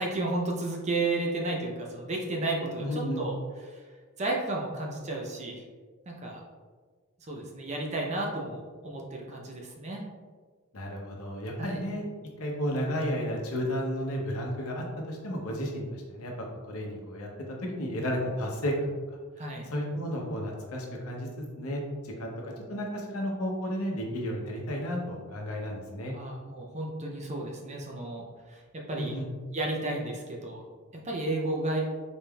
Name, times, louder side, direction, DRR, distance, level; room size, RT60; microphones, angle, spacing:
voice 1, 0.0-3.4 3.6-3.8 4.2-5.6 6.1-6.4 7.3-10.0 11.6-11.8 19.4-19.7 26.1-28.6 28.9-29.2 29.5-30.6 30.9-31.9, right 2 dB, 30° right, -1 dB, 0.5 m, -32 dB
voice 2, 2.8-3.2 10.7-12.0 12.4-16.3 16.7-17.3 17.8-18.9 19.7-21.3 21.6-26.1 29.0-29.2, equal, 70° left, 0 dB, 0.7 m, -32 dB
4.1 x 3.5 x 2.3 m, 1.5 s
head